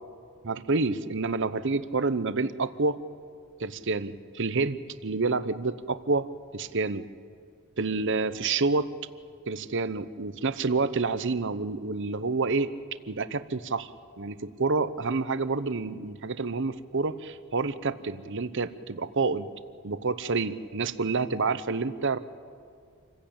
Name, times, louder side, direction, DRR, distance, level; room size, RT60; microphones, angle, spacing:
voice 1, 0.4-3.0 3.6-6.3 6.5-7.0 7.8-8.9 9.5-12.7 13.1-13.9 14.2-19.5 19.8-22.2, right 3 dB, 55° right, 13 dB, 0.9 m, -28 dB
27.5 x 16.0 x 8.8 m, 2.3 s
head